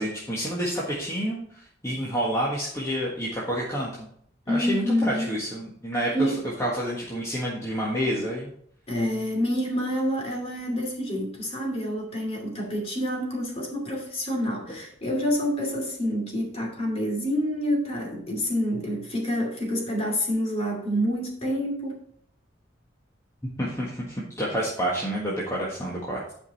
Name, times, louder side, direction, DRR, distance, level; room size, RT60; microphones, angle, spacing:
voice 1, 0.0-4.1 4.5-6.1 6.6-8.5 23.4-26.3, equal, 15° left, -5 dB, 1.6 m, -29 dB
voice 2, 4.5-5.3 6.1-6.4 8.9-22.0, equal, 30° left, 1 dB, 2.7 m, -27 dB
11.0 x 5.3 x 4.1 m, 0.64 s
head